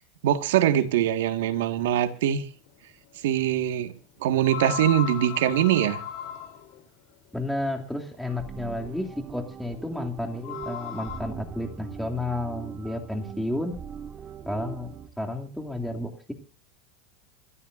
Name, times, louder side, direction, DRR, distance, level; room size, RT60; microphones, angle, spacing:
voice 1, 0.2-2.4 3.2-3.9 4.2-6.0, right 11 dB, 90° right, 1.7 m, -23 dB
sound 1, 2.7-2.8 4.4-6.8 8.7-8.8 10.3-11.2, left 9 dB, 55° left, 3.8 m, -35 dB
voice 2, 7.3-13.8 14.5-16.3, left 1 dB, ahead, 2.6 m, -32 dB
sound 2, 8.3-15.1, right 5 dB, 25° right, 1.9 m, -41 dB
27.0 x 13.0 x 2.6 m
supercardioid pair, 140°, 0 cm